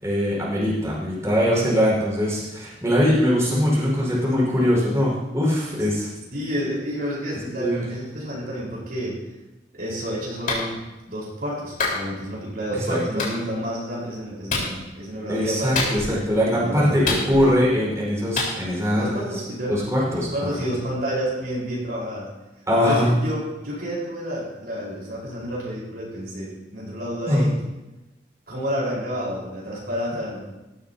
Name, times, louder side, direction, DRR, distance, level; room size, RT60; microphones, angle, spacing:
voice 1, 0.0-6.1 7.6-7.8 12.9-13.2 15.3-19.4 19.7-20.5 22.6-23.1 27.3-27.5, equal, 15° right, -6 dB, 5.1 m, -22 dB
voice 2, 6.3-9.2 9.7-10.8 11.1-16.0 16.5-17.5 18.9-19.8 20.1-22.3 22.8-27.6 28.5-30.5, equal, 60° right, -5 dB, 4.7 m, -30 dB
Clapping, 10.5-10.7 11.8-12.0 13.2-13.3 14.5-14.7 15.7-16.2 17.0-17.6 18.4-18.5, left 3 dB, 50° left, 4.4 m, -25 dB
17.0 x 14.0 x 2.9 m, 1.1 s
head